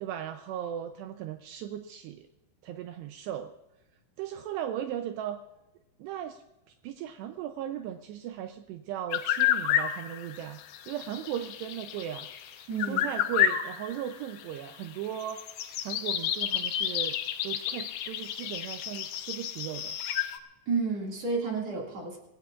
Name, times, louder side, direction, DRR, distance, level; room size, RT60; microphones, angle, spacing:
voice 1, 0.0-2.3 2.6-3.5 4.2-5.4 6.0-6.4 6.8-10.6 10.9-15.4 15.8-17.2 17.4-20.0, right 10 dB, 80° right, 7 dB, 2.6 m, -37 dB
sound 1, 9.1-20.4, left 10 dB, 85° left, 1.9 m, -30 dB
voice 2, 12.7-13.1 20.7-22.2, right 4 dB, 45° right, -1 dB, 2.8 m, -31 dB
25.5 x 16.5 x 2.4 m, 0.95 s
omnidirectional pair, 5.3 m